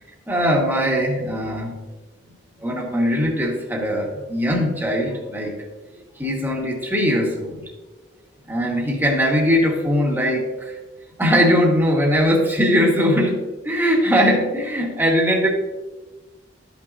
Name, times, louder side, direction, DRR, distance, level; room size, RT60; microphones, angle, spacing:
voice 1, 0.3-1.8 2.6-5.6 6.1-7.7 8.5-10.8 11.2-15.5, equal, 10° right, -2 dB, 1.7 m, -20 dB
12.5 x 5.9 x 2.8 m, 1.2 s
head